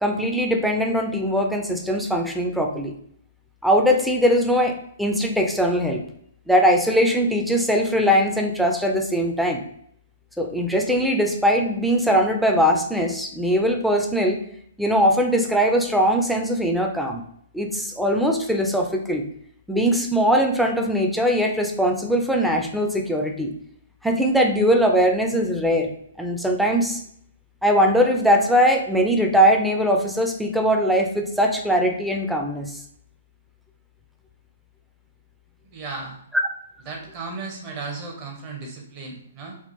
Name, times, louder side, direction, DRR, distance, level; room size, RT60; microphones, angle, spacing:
voice 1, 0.0-2.9 3.6-6.0 6.5-9.6 10.4-14.4 14.8-17.2 17.5-19.2 19.7-23.5 24.0-25.9 26.2-27.0 27.6-32.8, equal, ahead, 2 dB, 0.4 m, -21 dB
voice 2, 35.6-36.2 36.9-39.6, right 4 dB, 30° right, -1 dB, 0.7 m, -35 dB
3.5 x 2.4 x 2.6 m, 0.67 s
figure-of-eight pair, 120°, 0 cm